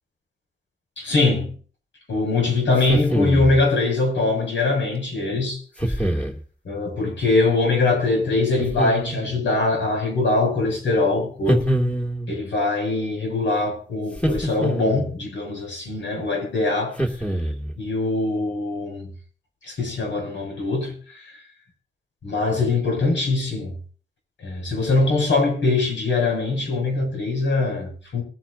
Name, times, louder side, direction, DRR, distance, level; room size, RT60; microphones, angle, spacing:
voice 1, 1.0-1.5 2.1-5.6 5.9-6.2 6.6-11.9 12.3-17.0 17.8-19.1 19.6-21.3 22.2-23.8 24.4-28.2, left 3 dB, 75° left, 7.2 m, -22 dB
sound 1, 2.8-3.6 5.8-6.4 8.6-9.4 11.5-12.3 14.1-15.1 17.0-17.7, right 1 dB, 5° left, 2.8 m, -24 dB
22.0 x 8.9 x 2.8 m
cardioid pair, 65°, 19 cm